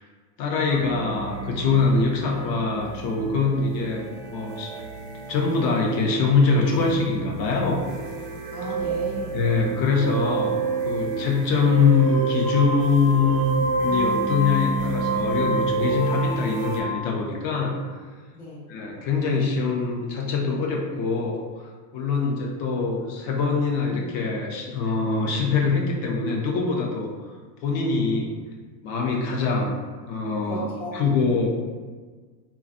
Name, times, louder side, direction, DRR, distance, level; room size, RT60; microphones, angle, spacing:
voice 1, 0.4-4.7 5.3-7.8 9.3-10.6 10.8-17.7 18.7-27.1 27.6-28.3 28.8-29.8 30.1-30.7 30.9-31.5, left 4 dB, 45° left, 0 dB, 0.6 m, -23 dB
sound 1, 0.7-16.8, right 3 dB, 65° right, 0.6 m, -29 dB
voice 2, 8.5-9.4 18.3-18.7 30.4-31.4, right 2 dB, 5° left, -8 dB, 0.4 m, -35 dB
3.2 x 2.3 x 2.5 m, 1.4 s
supercardioid pair, 115°, 50 cm